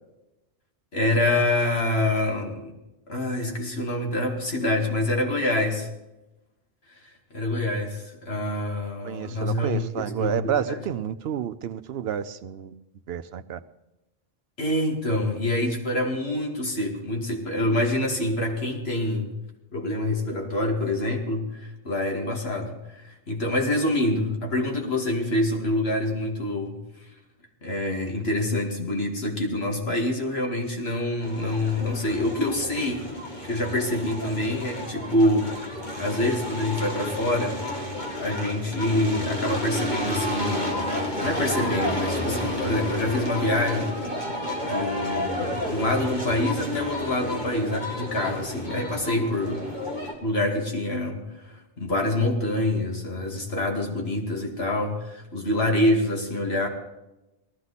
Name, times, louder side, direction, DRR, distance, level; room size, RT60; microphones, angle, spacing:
voice 1, 0.9-2.7 3.1-5.9 7.3-10.8 14.6-19.3 19.7-26.8 27.6-35.7 36.0-37.6 38.1-40.9 41.2-44.0 44.6-49.7 50.2-56.7, left 1 dB, 85° left, 2.3 m, -26 dB
voice 2, 9.0-12.7 13.1-13.6, right 9 dB, 80° right, 0.9 m, -30 dB
sound 1, 31.2-50.1, left 1 dB, 50° left, 2.1 m, -31 dB
18.5 x 13.5 x 4.1 m
omnidirectional pair, 1.0 m